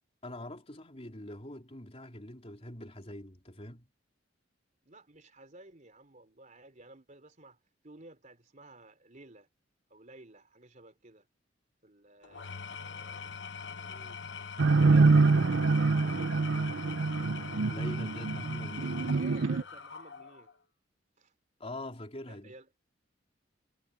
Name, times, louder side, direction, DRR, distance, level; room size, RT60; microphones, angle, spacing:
voice 1, 0.2-3.9 17.7-19.1 21.6-22.5, left 1 dB, 30° left, 3.7 m, -44 dB
voice 2, 4.9-9.5 9.9-11.3 11.8-13.4 13.7-14.2 14.8-16.8 18.8-20.5 21.2-21.3 22.3-22.8, right 2 dB, 40° right, 3.7 m, -54 dB
Engine / Tools, 12.2-20.6, left 5 dB, 65° left, 1.2 m, -43 dB
sound 1, 14.6-19.6, right 3 dB, 75° right, 0.6 m, -25 dB
head